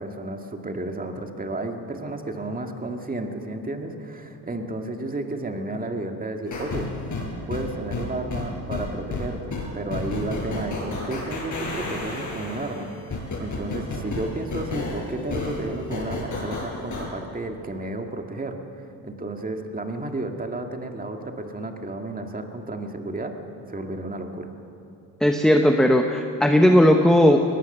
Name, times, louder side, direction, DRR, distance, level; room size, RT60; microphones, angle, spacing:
voice 1, 0.0-6.9 7.5-18.6 19.0-23.3 23.7-24.5, right 2 dB, 20° right, 4 dB, 2.1 m, -32 dB
sound 1, 6.5-17.1, left 2 dB, 45° left, 6.5 m, -31 dB
voice 2, 25.2-27.4, equal, ahead, 4 dB, 1.1 m, -17 dB
21.5 x 18.5 x 6.8 m, 2.8 s
cardioid pair, 95°, 42 cm